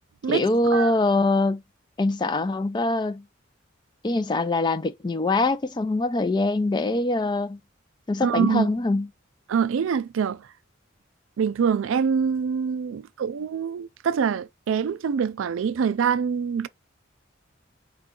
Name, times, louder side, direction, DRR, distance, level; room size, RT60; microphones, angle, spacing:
voice 1, 0.3-1.6 2.0-3.2 4.0-7.6 8.1-9.1, left 2 dB, 25° left, 0.4 m, -23 dB
voice 2, 8.2-8.7 9.5-10.4 11.4-16.7, right 6 dB, 80° right, 0.4 m, -25 dB
4.5 x 2.3 x 3.6 m
head